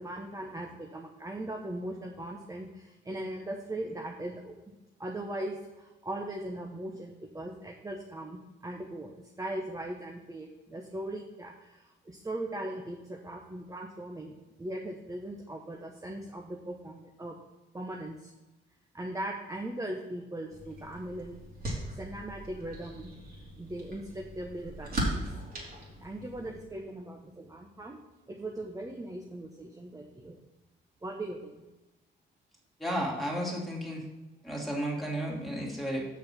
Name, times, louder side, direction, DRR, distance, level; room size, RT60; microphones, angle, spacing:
voice 1, 0.0-4.5 5.0-9.1 9.4-17.4 17.7-18.3 18.9-21.4 21.9-23.1 23.6-25.1 26.0-28.0 28.3-30.4 31.0-31.6, right 1 dB, 15° right, 1 dB, 1.0 m, -39 dB
sound 1, 20.5-26.6, right 1 dB, 50° right, 3.1 m, -38 dB
voice 2, 32.8-34.0 34.4-36.1, equal, ahead, -4 dB, 2.7 m, -33 dB
7.3 x 6.4 x 5.7 m, 1.1 s
cardioid pair, 90°, 20 cm